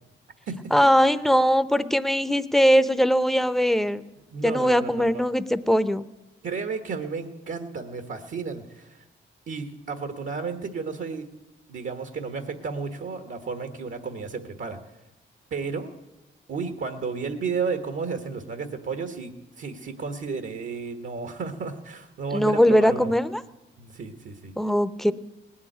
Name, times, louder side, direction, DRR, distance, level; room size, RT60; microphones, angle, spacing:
voice 1, 0.7-4.0 4.4-6.0 22.3-23.4 24.6-25.1, equal, ahead, 13 dB, 0.8 m, -20 dB
voice 2, 4.3-5.2 6.4-9.0 9.5-11.3 11.7-14.8 15.5-15.9 16.5-23.1 23.8-24.5, right 5 dB, 70° right, 7 dB, 1.4 m, -32 dB
18.5 x 7.3 x 9.2 m, 0.99 s
cardioid pair, 60°, 21 cm